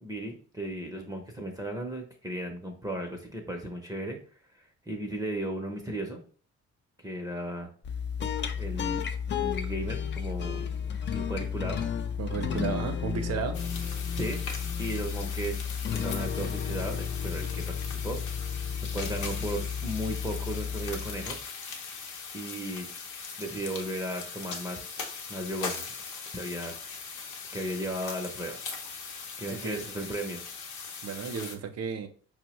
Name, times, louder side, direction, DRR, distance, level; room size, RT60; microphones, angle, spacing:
voice 1, 0.0-4.2 4.6-6.2 7.0-7.7 8.5-9.1 9.3-10.7 11.1-11.8 14.2-14.4 14.8-18.2 18.9-21.4 22.3-22.9 23.4-25.9 26.3-26.8 27.5-28.6 29.4-30.4, right 1 dB, 10° right, 2 dB, 0.6 m, -35 dB
sound 1, 7.8-21.4, left 7 dB, 40° left, 0.4 m, -33 dB
voice 2, 12.2-13.6 29.5-29.9 31.0-32.1, right 6 dB, 55° right, 7 dB, 0.6 m, -33 dB
sound 2, 13.5-31.6, left 5 dB, 80° left, 0.7 m, -40 dB
4.4 x 2.1 x 2.9 m, 0.43 s
cardioid pair, 90°, 30 cm